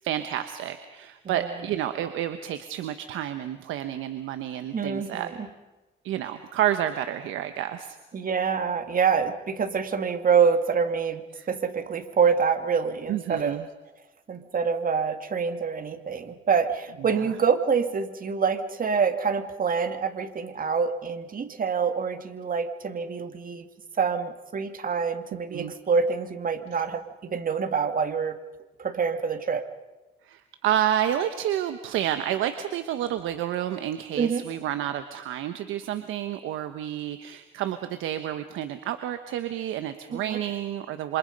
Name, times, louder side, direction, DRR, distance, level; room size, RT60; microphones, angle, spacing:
voice 1, 0.0-5.3 6.0-8.0 11.3-11.5 13.1-13.6 17.1-17.2 25.5-25.7 30.2-41.2, right 11 dB, 90° right, 9 dB, 1.2 m, -30 dB
voice 2, 4.7-5.5 8.1-13.6 14.3-23.7 24.0-28.4 28.8-29.6 34.2-34.5 40.1-40.4, right 6 dB, 45° right, 8 dB, 2.2 m, -26 dB
27.5 x 26.5 x 5.4 m, 1.1 s
cardioid pair, 90°, 20 cm